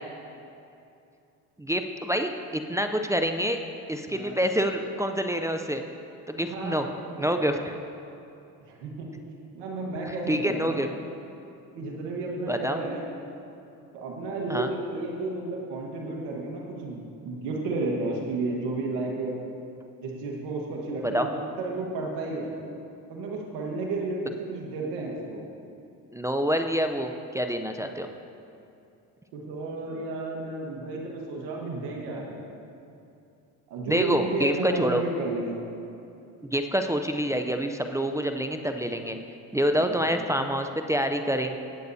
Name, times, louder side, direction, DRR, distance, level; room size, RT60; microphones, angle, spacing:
voice 1, 1.6-3.6 3.9-5.8 6.3-6.9 7.2-7.7 10.3-10.9 12.5-12.8 14.5-14.7 21.0-21.3 26.1-28.1 33.9-35.0 36.5-39.2 39.5-41.6, equal, 10° right, 5 dB, 0.5 m, -27 dB
voice 2, 4.1-4.4 6.5-7.4 8.7-9.1 9.5-10.8 11.7-13.0 13.9-19.3 20.0-22.5 23.1-25.4 29.3-32.4 33.7-35.6 39.8-40.0, right 2 dB, 80° right, -1 dB, 1.5 m, -32 dB
18.5 x 8.2 x 2.7 m, 2.7 s
supercardioid pair, 85°, 41 cm